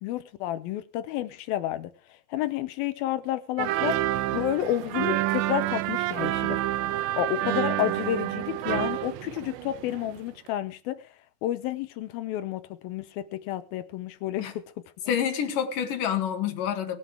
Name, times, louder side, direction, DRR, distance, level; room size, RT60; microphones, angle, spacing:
voice 1, 0.0-1.9 2.3-4.0 4.3-6.6 7.2-11.0 11.4-14.4, left 13 dB, 80° left, 2.2 m, -30 dB
sound 1, 3.6-10.2 10.5-10.6, right 15 dB, 85° right, 3.0 m, -28 dB
voice 2, 15.1-17.0, left 9 dB, 55° left, 3.2 m, -28 dB
23.0 x 7.8 x 3.5 m
omnidirectional pair, 5.1 m